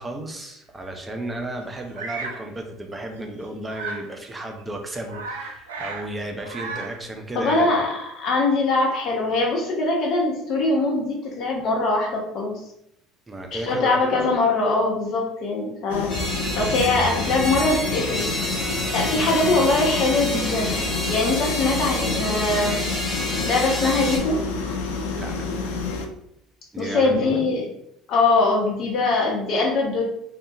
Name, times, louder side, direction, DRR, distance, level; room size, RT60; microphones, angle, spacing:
voice 1, 0.0-7.7 13.3-14.0 19.0-19.5 22.2-22.6 25.2-25.5 26.7-27.4, right 1 dB, 20° right, 2 dB, 0.5 m, -34 dB
Bird vocalization bird call bird song, 1.9-2.4 3.7-4.1 4.6-4.7 4.9-6.1 6.4-7.0, right 4 dB, 90° right, 0.3 m, -34 dB
voice 2, 7.3-12.5 13.5-16.1 16.6-18.2 18.9-20.8 21.1-22.8 23.5-24.4 26.8-27.6 28.1-30.0, left 3 dB, 60° left, -1 dB, 0.8 m, -22 dB
sound 1, 15.9-26.1, left 4 dB, 85° left, 0.3 m, -29 dB
sound 2, 16.1-24.2, left 1 dB, 25° left, 1.3 m, -29 dB
2.7 x 2.3 x 2.3 m, 0.77 s
hypercardioid pair, 75°, 0 cm